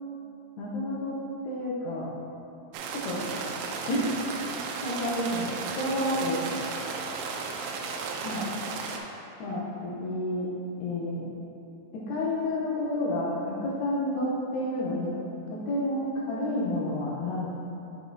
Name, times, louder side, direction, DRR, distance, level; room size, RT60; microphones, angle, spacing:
voice 1, 0.6-1.2 1.5-2.1 3.0-3.2 3.9-4.1 4.8-6.6 8.2-8.5 9.4-10.5 10.8-11.2 11.9-15.1 15.5-17.5, left 1 dB, 85° left, -5 dB, 2.9 m, -30 dB
sound 1, 2.7-9.0, right 4 dB, 85° right, 2.5 m, -34 dB
7.0 x 6.2 x 2.7 m, 2.8 s
omnidirectional pair, 4.6 m